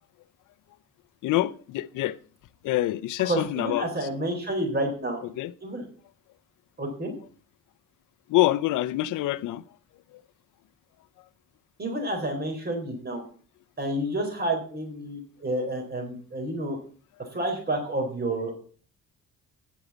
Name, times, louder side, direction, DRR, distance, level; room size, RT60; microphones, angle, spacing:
voice 1, 1.2-2.2 2.6-3.9 5.4-5.5 8.3-9.6 10.1-10.2, left 15 dB, 85° left, 0.7 m, -26 dB
voice 2, 3.2-5.2 5.6-5.9 6.8-7.1 11.8-13.2 13.8-16.8 17.2-18.6, right 1 dB, 35° right, 4.0 m, -29 dB
9.6 x 7.9 x 7.3 m
cardioid pair, 90°, 30 cm